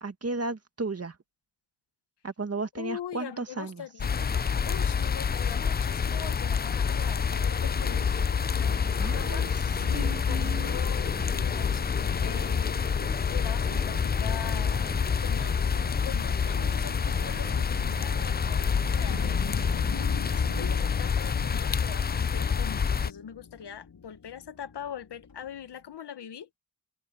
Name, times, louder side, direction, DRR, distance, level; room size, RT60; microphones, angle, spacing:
voice 1, 0.0-1.2 2.2-3.9 9.0-9.5 9.9-10.7, right 3 dB, 35° right, 2.1 m, -34 dB
voice 2, 2.8-4.3 4.6-8.3 8.6-9.5 9.8-15.7 16.0-19.4 20.3-26.5, left 9 dB, 75° left, 1.6 m, -42 dB
sound 1, 4.0-23.1, left 6 dB, 25° left, 0.4 m, -27 dB
sound 2, 7.4-20.9, right 8 dB, 65° right, 1.6 m, -46 dB
sound 3, 19.0-25.6, left 6 dB, 60° left, 4.1 m, -43 dB
cardioid pair, 50°, 41 cm